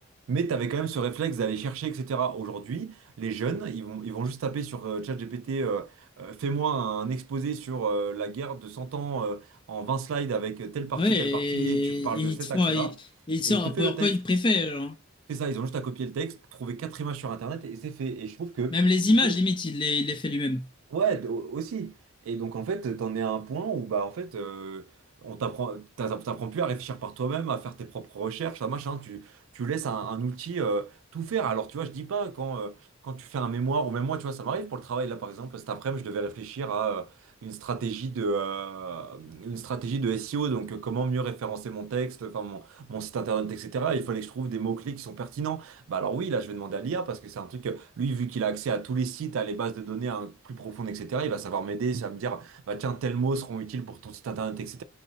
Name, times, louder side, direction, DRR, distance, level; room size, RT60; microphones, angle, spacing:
voice 1, 0.3-13.0 13.5-14.2 15.3-18.8 19.2-19.4 20.9-21.9 22.3-24.9 25.2-32.8 33.0-37.1 37.4-54.8, right 5 dB, 75° right, 0.3 m, -31 dB
voice 2, 11.0-12.9 13.3-14.9 18.7-20.6, left 2 dB, 25° left, 0.4 m, -25 dB
3.1 x 2.8 x 2.7 m
head